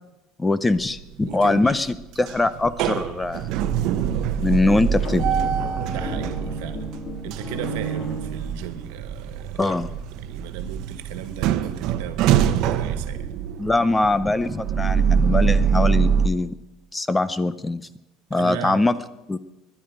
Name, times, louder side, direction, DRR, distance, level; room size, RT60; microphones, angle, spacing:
voice 1, 0.4-3.5 4.4-5.3 9.6-9.9 13.6-16.5 16.9-17.9 18.3-19.0 19.3-19.4, left 2 dB, 10° left, 15 dB, 0.6 m, -22 dB
sound 1, 0.8-1.3 1.7-16.3, right 7 dB, 60° right, 0.9 m, -24 dB
voice 2, 1.3-1.8 5.9-6.9 7.2-9.8 10.2-13.3 18.3-18.9, right 9 dB, 90° right, 10 dB, 1.5 m, -36 dB
sound 2, 4.8-9.0, right 1 dB, 40° left, 2.1 m, -33 dB
20.0 x 11.0 x 5.2 m, 0.96 s
cardioid pair, 150°, 0 cm